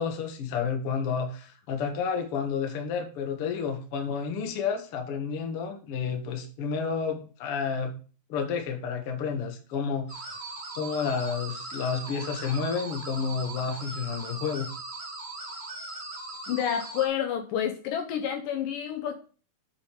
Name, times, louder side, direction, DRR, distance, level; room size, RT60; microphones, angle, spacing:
voice 1, 0.0-8.0 8.3-10.3 10.7-14.7, left 6 dB, 55° left, 3 dB, 1.8 m, -30 dB
sound 1, 10.1-17.1, right 2 dB, 50° right, 0.7 m, -39 dB
voice 2, 16.5-19.1, left 9 dB, 80° left, 5 dB, 2.2 m, -29 dB
9.1 x 5.0 x 5.0 m, 0.39 s
omnidirectional pair, 4.2 m